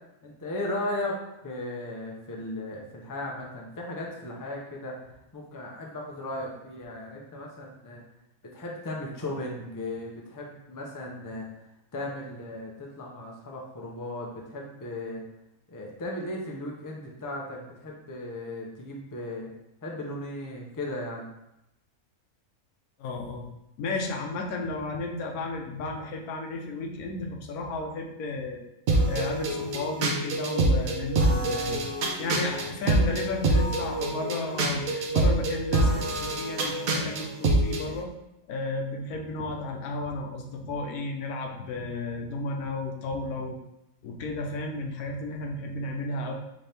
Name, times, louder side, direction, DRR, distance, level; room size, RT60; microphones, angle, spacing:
voice 1, 0.2-1.2 1.4-5.0 5.3-8.0 8.5-11.5 11.9-15.2 15.7-19.5 19.8-21.3, left 1 dB, 25° left, -1 dB, 0.4 m, -36 dB
voice 2, 23.0-23.5 23.8-28.6 29.1-31.9 32.2-38.1 38.5-43.6 44.0-46.3, left 2 dB, 85° left, 2 dB, 1.2 m, -33 dB
sound 1, 28.9-37.8, right 2 dB, 70° right, 1.1 m, -25 dB
4.2 x 3.4 x 3.3 m, 0.88 s
omnidirectional pair, 1.5 m